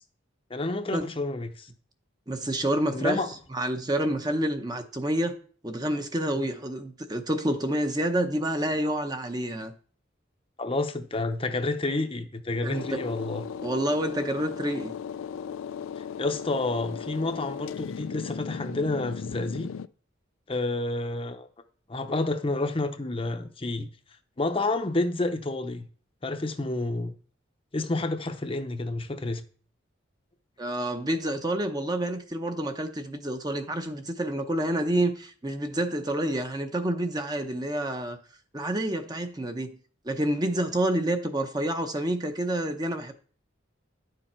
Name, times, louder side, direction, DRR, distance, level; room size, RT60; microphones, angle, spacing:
voice 1, 0.5-1.7 2.9-3.3 10.6-13.4 16.2-19.7 20.5-21.5 21.9-23.9 24.4-25.9 26.2-27.1 27.7-29.4, left 2 dB, 30° left, 0.7 m, -29 dB
voice 2, 2.3-3.2 3.5-5.4 5.6-9.7 12.6-13.0 13.6-14.9 30.6-38.2 38.5-39.8 40.0-43.1, right 1 dB, 20° right, 0.7 m, -28 dB
sound 1, 12.7-19.9, left 7 dB, 85° left, 0.4 m, -37 dB
10.5 x 6.8 x 4.4 m
head